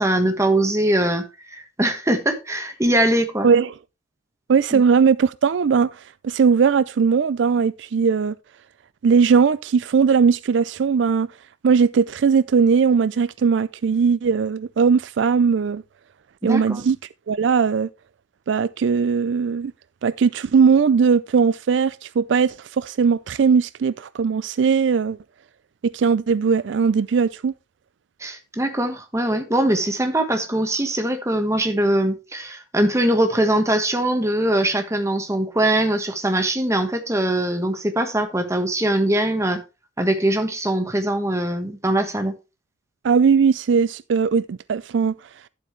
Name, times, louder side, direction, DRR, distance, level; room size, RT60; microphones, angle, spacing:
voice 1, 0.0-3.5 4.7-4.8 16.4-16.8 28.2-39.6 40.0-42.3, right 1 dB, 15° right, 1.4 m, -22 dB
voice 2, 3.4-3.7 4.5-8.3 9.0-11.3 11.6-15.8 16.4-17.0 17.3-17.9 18.5-19.7 20.0-25.2 25.8-27.5 43.0-45.1, right 6 dB, 70° right, 0.4 m, -19 dB
11.5 x 7.6 x 3.2 m
head